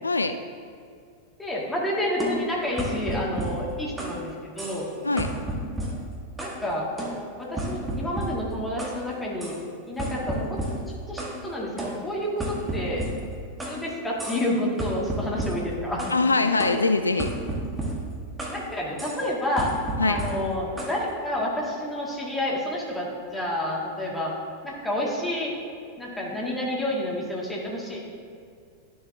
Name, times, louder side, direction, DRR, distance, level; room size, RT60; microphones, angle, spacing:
voice 1, 0.0-0.4 5.0-5.3 16.1-17.3 20.0-20.2, left 3 dB, 80° left, 8 dB, 0.3 m, -23 dB
voice 2, 1.4-4.9 6.4-6.9 7.4-9.5 9.9-10.6 11.1-13.0 13.7-16.2 18.5-19.7 20.0-24.4 24.6-25.5 26.0-28.0, left 1 dB, 10° left, -4 dB, 1.9 m, -29 dB
sound 1, 2.2-4.2 4.6-4.9 5.2-6.6 7.0-9.0 9.4-9.6 10.0-11.4 11.8-13.8 14.2-14.5 14.8-16.2 16.6-18.6 19.0-19.2 19.6-21.0, right 1 dB, 10° right, 1.3 m, -32 dB
11.0 x 6.9 x 2.7 m, 2.3 s
figure-of-eight pair, 90°, 0 cm